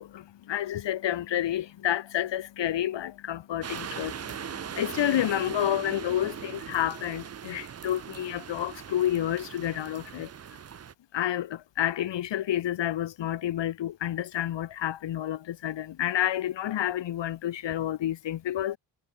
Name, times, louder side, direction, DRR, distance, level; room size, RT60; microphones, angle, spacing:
voice 1, 0.0-10.3 11.1-18.8, left 11 dB, 65° left, 0.7 m, -29 dB
sound 1, 3.6-10.9, right 8 dB, 35° right, 0.5 m, -40 dB
wide cardioid pair, 110°, 46 cm